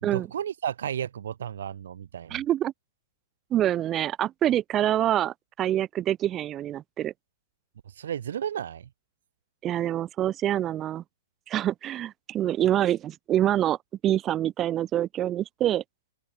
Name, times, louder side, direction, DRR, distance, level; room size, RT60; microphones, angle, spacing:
voice 1, 0.0-2.4 7.8-8.9, right 9 dB, 55° right, 0.7 m, -33 dB
voice 2, 2.3-2.7 3.5-7.1 9.6-11.0 11.5-13.8 14.0-15.8, right 12 dB, 20° right, 0.3 m, -26 dB
open air
figure-of-eight pair, 115°, 0 cm